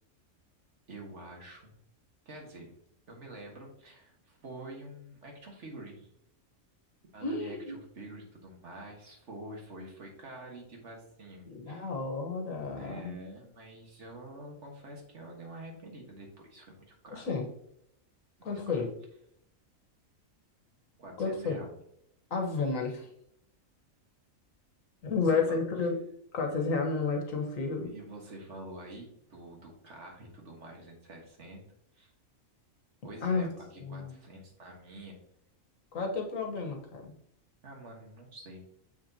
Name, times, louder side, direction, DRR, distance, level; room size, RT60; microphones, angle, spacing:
voice 1, 0.9-1.8 2.2-2.7 3.1-6.1 7.1-11.8 12.8-17.3 18.4-18.7 21.0-21.7 25.5-25.6 27.8-31.6 31.9-32.1 33.0-35.2 37.6-38.6, right 1 dB, 60° right, 1 dB, 1.8 m, -47 dB
voice 2, 7.2-7.8 11.5-13.2 17.1-17.5 18.4-18.9 21.2-21.6 22.3-23.1 25.0-25.9 26.3-27.9 33.2-33.5 33.8-34.1 35.9-37.1, left 4 dB, 75° left, 2 dB, 1.6 m, -31 dB
6.9 x 6.0 x 2.8 m, 0.72 s
omnidirectional pair, 1.4 m